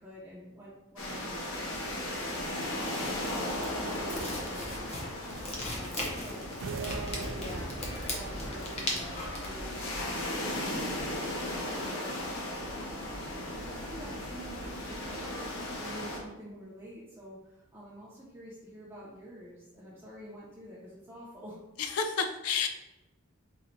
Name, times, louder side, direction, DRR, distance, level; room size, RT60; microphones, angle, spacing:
voice 1, 0.0-21.6, equal, 10° right, -9 dB, 0.6 m, -48 dB
sound 1, 1.0-16.2, left 1 dB, 65° left, 0.9 m, -36 dB
sound 2, 3.3-9.5, left 1 dB, 30° left, 0.6 m, -38 dB
sound 3, 6.6-8.2, right 5 dB, 60° right, 0.3 m, -39 dB
voice 2, 21.8-22.7, left 6 dB, 85° left, 7 dB, 0.4 m, -30 dB
3.9 x 2.3 x 4.4 m, 0.99 s
head